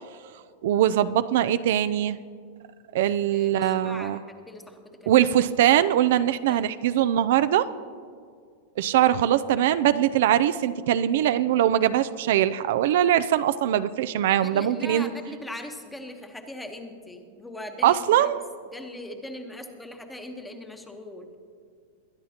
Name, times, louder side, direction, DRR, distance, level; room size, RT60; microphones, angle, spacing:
voice 1, 0.6-2.2 2.9-4.2 5.1-7.7 8.8-15.1 17.8-18.4, right 11 dB, 65° right, 12 dB, 0.4 m, -22 dB
voice 2, 3.3-5.2 6.5-6.6 9.0-9.1 14.3-18.3 18.7-21.3, left 1 dB, 5° left, 5 dB, 1.1 m, -40 dB
21.5 x 10.5 x 2.9 m, 2.2 s
supercardioid pair, 150°, 0 cm